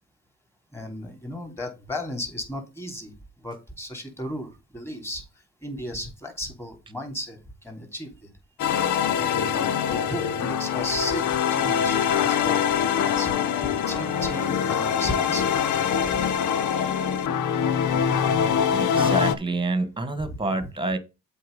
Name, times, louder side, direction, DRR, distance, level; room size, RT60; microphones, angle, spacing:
voice 1, 0.7-8.3 9.2-13.4 13.7-16.2 20.2-20.4, equal, 10° left, 3.1 m, -35 dB
sound 1, 8.6-19.3, left 8 dB, 75° left, 0.8 m, -24 dB
voice 2, 18.7-21.0, right 2 dB, 15° right, 1.5 m, -28 dB
7.7 x 4.4 x 5.3 m
cardioid pair, 90°, 30 cm